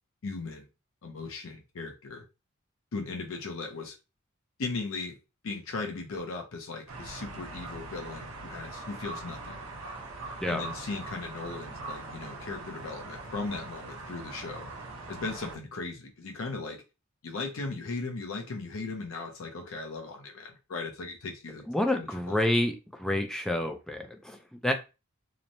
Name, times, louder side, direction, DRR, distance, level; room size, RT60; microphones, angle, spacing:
voice 1, 0.2-0.7 1.0-2.2 2.9-4.0 4.6-5.2 5.4-9.6 10.5-14.7 15.1-16.8 17.2-21.7 21.9-22.4, left 3 dB, 70° left, 0.5 m, -37 dB
sound 1, 6.9-15.6, right 2 dB, 90° right, 0.7 m, -42 dB
voice 2, 21.7-24.7, left 1 dB, ahead, 0.3 m, -29 dB
3.0 x 2.1 x 2.6 m
head